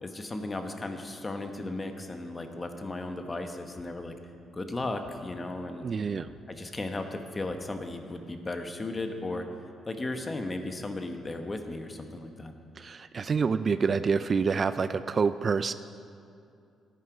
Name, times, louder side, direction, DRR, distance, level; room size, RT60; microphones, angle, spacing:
voice 1, 0.0-4.1 4.5-5.9 6.5-9.5 9.9-12.5, left 2 dB, 25° left, 6 dB, 1.1 m, -35 dB
sound 1, 3.8-4.4 5.0-5.7 6.3-6.9 7.5-8.1, left 2 dB, 45° left, 1.5 m, -56 dB
voice 2, 5.8-6.3 12.8-15.7, right 5 dB, 40° right, 13 dB, 0.3 m, -27 dB
13.5 x 9.8 x 5.1 m, 2.5 s
cardioid pair, 90°, 0 cm